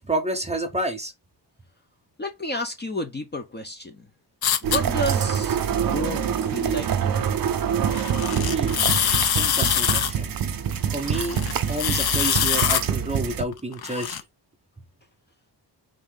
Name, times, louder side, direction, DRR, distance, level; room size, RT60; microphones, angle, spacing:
voice 1, 0.1-1.1 8.4-8.8 9.4-10.3 10.9-11.4 11.7-14.2, right 2 dB, 15° right, 0.7 m, -29 dB
voice 2, 2.2-4.1 4.6-7.3, left 1 dB, 25° left, 0.6 m, -31 dB
sound 1, 4.4-4.8 7.9-10.1 11.1-12.8 13.4-14.2, left 9 dB, 65° left, 0.6 m, -24 dB
sound 2, 4.6-13.4, right 8 dB, 55° right, 0.6 m, -25 dB
3.7 x 2.7 x 3.7 m
wide cardioid pair, 150°, 41 cm